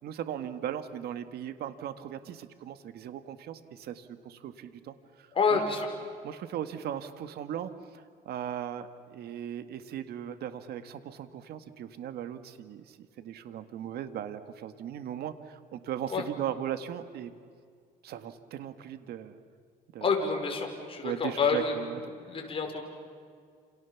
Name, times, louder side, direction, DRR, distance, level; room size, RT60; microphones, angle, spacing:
voice 1, 0.0-5.6 6.2-17.3 18.0-19.4 19.9-20.1 21.0-22.0 22.3-22.5, right 10 dB, 70° right, 10 dB, 1.8 m, -38 dB
voice 2, 5.3-5.9 16.1-16.2 20.0-21.8 22.3-22.8, left 5 dB, 35° left, 2 dB, 5.4 m, -28 dB
29.0 x 28.5 x 7.3 m, 2.1 s
cardioid pair, 110°, 17 cm